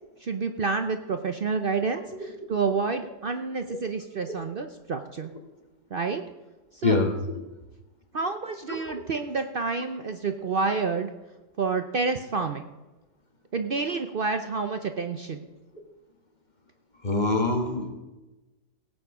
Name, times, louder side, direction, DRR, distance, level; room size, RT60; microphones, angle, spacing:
voice 1, 0.2-5.3 5.9-6.2 6.7-7.0 8.1-11.1 11.6-12.6 13.5-15.5, right 4 dB, 90° right, 7 dB, 0.4 m, -29 dB
voice 2, 17.0-17.9, left 3 dB, 25° left, 3 dB, 1.7 m, -24 dB
17.0 x 8.9 x 4.9 m, 1.1 s
omnidirectional pair, 2.0 m